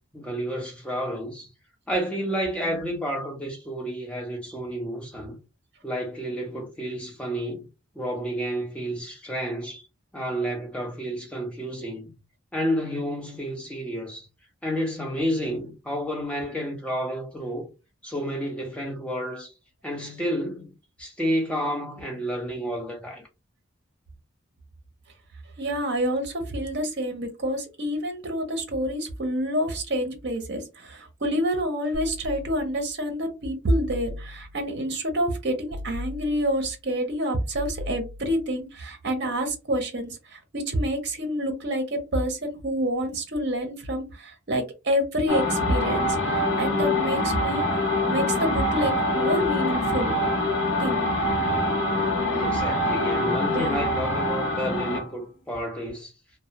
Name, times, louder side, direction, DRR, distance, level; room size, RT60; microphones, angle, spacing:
voice 1, 0.1-1.5 1.9-5.4 5.8-7.7 8.0-9.8 10.1-12.2 12.5-14.3 14.6-17.7 18.0-19.5 19.8-20.7 21.0-23.2 52.3-56.1, equal, 5° left, 0.6 m, -30 dB
voice 2, 25.6-47.6 48.1-50.2 50.8-51.1 53.5-53.8, equal, 55° right, 0.7 m, -28 dB
sound 1, 31.9-33.0 33.9-34.8 35.7-36.8 37.5-38.6, left 1 dB, 80° right, 0.3 m, -38 dB
sound 2, 45.3-55.1, left 1 dB, 80° left, 0.7 m, -25 dB
2.3 x 2.0 x 2.8 m
head